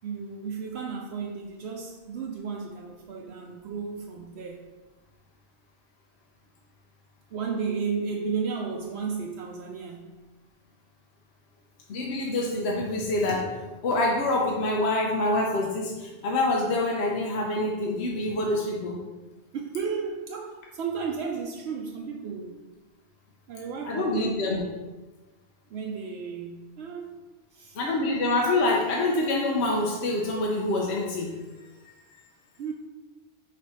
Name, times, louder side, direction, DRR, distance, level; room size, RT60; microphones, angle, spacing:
voice 1, 0.0-4.7 7.3-10.1 19.5-22.6 23.5-24.6 25.7-27.2 27.5-27.8 32.6-32.7, right 5 dB, 75° right, 0 dB, 0.9 m, -33 dB
voice 2, 11.9-19.0 23.8-24.6 27.8-31.3, left 2 dB, 85° left, -1 dB, 1.0 m, -26 dB
4.7 x 4.2 x 4.6 m, 1.2 s
omnidirectional pair, 1.1 m